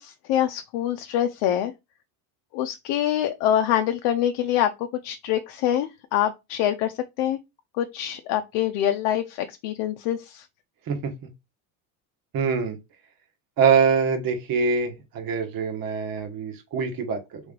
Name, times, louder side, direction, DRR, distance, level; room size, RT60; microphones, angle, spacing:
voice 1, 0.0-1.7 2.5-7.4 7.8-10.4, left 11 dB, 70° left, 0.6 m, -25 dB
voice 2, 12.3-12.8 13.6-17.4, right 6 dB, 50° right, 1.5 m, -24 dB
3.5 x 3.2 x 3.7 m
supercardioid pair, 105°, 43 cm